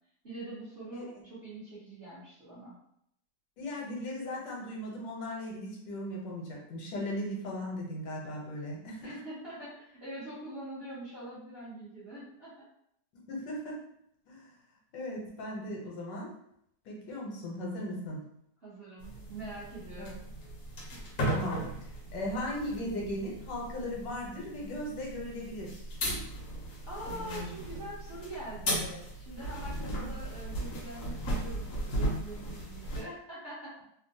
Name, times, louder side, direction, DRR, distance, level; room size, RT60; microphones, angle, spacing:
voice 1, 0.2-2.7 9.0-12.5 18.6-20.2 26.9-33.8, right 1 dB, 40° right, -10 dB, 1.0 m, -44 dB
voice 2, 3.6-9.2 13.1-13.8 14.3-14.5 14.9-16.3 16.8-18.2 20.0-20.1 21.3-21.6 22.1-25.8 27.2-27.5 29.9-30.0, left 1 dB, 75° left, -2 dB, 1.4 m, -37 dB
sound 1, 19.0-33.0, right 1 dB, 55° left, 1.0 m, -37 dB
3.4 x 2.2 x 2.6 m, 0.73 s
omnidirectional pair, 2.0 m